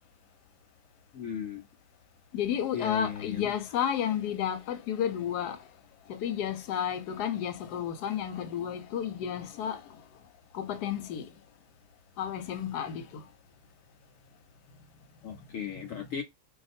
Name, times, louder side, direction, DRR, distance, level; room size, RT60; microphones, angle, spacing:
voice 1, 1.1-1.6 2.7-3.6 15.2-16.2, left 8 dB, 65° left, 0.8 m, -36 dB
voice 2, 2.3-5.6 6.1-9.8 10.5-11.3 12.2-13.0, left 9 dB, 90° left, 1.2 m, -31 dB
2.5 x 2.4 x 4.1 m
omnidirectional pair, 1.7 m